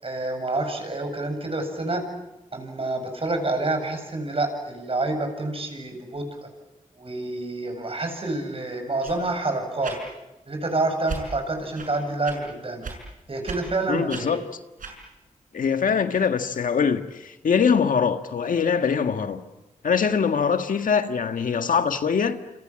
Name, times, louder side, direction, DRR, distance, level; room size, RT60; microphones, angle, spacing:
voice 1, 0.0-2.0 2.5-6.3 7.0-10.0 10.5-12.9 13.3-14.4, right 2 dB, 45° right, 7.9 m, -28 dB
sound 1, 9.0-9.2 9.8-10.0 11.0-11.2 11.7-11.9 12.2-12.4 12.8-13.0 13.4-13.6 14.1-14.2 14.8-15.0, right 5 dB, 85° right, 6.6 m, -35 dB
voice 2, 13.9-14.4 15.5-19.4 19.8-22.4, left 6 dB, 85° left, 1.6 m, -23 dB
28.0 x 27.5 x 7.7 m
cardioid pair, 60°, 14 cm